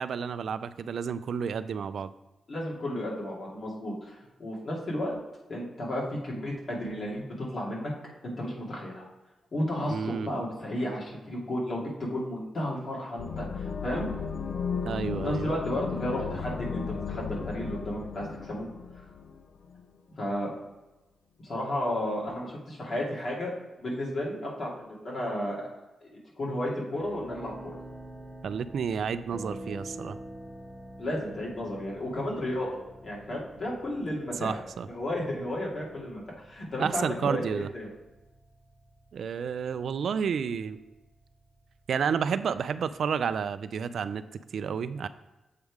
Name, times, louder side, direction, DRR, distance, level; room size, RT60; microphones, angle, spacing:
voice 1, 0.0-2.1 9.9-10.3 14.8-15.5 28.4-30.2 34.1-34.9 36.8-37.7 39.1-40.8 41.9-44.2 44.5-45.1, right 6 dB, 70° right, 13 dB, 0.3 m, -31 dB
voice 2, 2.5-5.2 5.5-7.9 8.2-9.1 9.5-14.1 15.2-18.7 20.2-20.5 21.4-23.5 23.8-25.7 26.0-26.1 26.4-27.8 31.0-32.7 33.0-34.6 34.9-37.9, left 1 dB, 50° left, -4 dB, 2.3 m, -33 dB
sound 1, 13.2-19.8, left 5 dB, 75° left, 0.5 m, -35 dB
sound 2, 26.9-43.4, right 1 dB, 5° right, 1.0 m, -48 dB
7.4 x 3.4 x 4.7 m, 1.1 s
cardioid pair, 70°, 0 cm